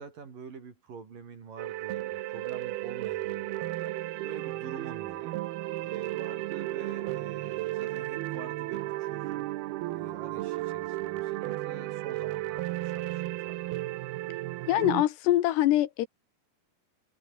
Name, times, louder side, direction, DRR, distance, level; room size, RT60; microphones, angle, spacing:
voice 1, 0.0-4.0 4.2-5.4 5.8-9.5 9.9-13.8, right 5 dB, 55° right, 5.4 m, -47 dB
sound 1, 1.6-15.0, right 17 dB, 75° right, 2.6 m, -34 dB
voice 2, 14.7-16.1, left 14 dB, 80° left, 3.4 m, -24 dB
omnidirectional pair, 4.8 m